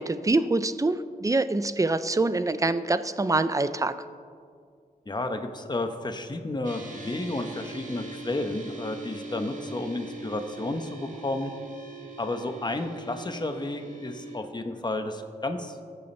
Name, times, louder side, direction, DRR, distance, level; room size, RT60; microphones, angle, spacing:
voice 1, 0.0-3.9, right 2 dB, 20° right, 12 dB, 0.5 m, -25 dB
voice 2, 5.1-11.5 12.2-15.8, left 2 dB, 25° left, 6 dB, 0.9 m, -32 dB
sound 1, 6.6-14.4, right 3 dB, 50° right, 1.8 m, -41 dB
19.0 x 7.0 x 3.3 m, 2.1 s
cardioid pair, 65°, 16 cm